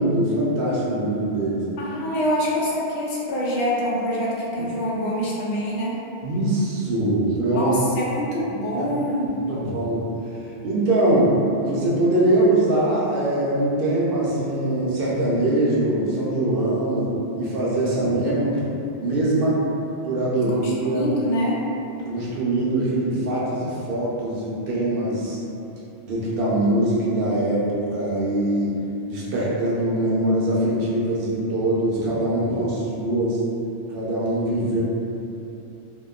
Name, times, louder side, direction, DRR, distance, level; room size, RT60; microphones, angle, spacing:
voice 1, 0.0-1.6 6.2-7.8 8.7-8.8 9.5-10.1 10.6-11.3 11.6-17.1 17.4-18.7 19.0-19.6 20.0-21.1 22.0-25.4 26.1-28.7 29.1-33.4 33.9-34.8, right 1 dB, 65° right, -6 dB, 0.7 m, -22 dB
voice 2, 1.8-6.0 7.5-9.4 20.4-21.6, equal, 90° left, -5 dB, 0.9 m, -25 dB
2.8 x 2.2 x 2.3 m, 2.8 s
omnidirectional pair, 1.1 m